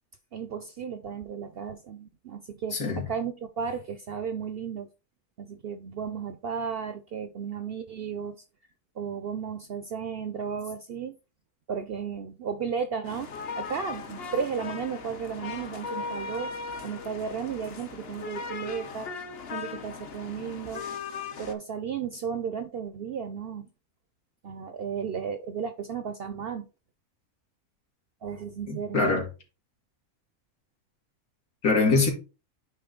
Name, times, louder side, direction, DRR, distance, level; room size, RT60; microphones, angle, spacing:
voice 1, 0.3-4.9 5.4-8.4 9.0-11.2 11.7-16.5 16.8-19.1 19.5-20.8 21.4-23.7 24.4-26.7 28.2-29.0, right 6 dB, 65° right, 0.6 m, -34 dB
voice 2, 2.7-3.1 28.7-29.2 31.6-32.1, left 3 dB, 85° left, 2.4 m, -23 dB
sound 1, 13.0-21.6, left 5 dB, 50° left, 0.9 m, -38 dB
9.0 x 3.2 x 3.8 m
omnidirectional pair, 1.5 m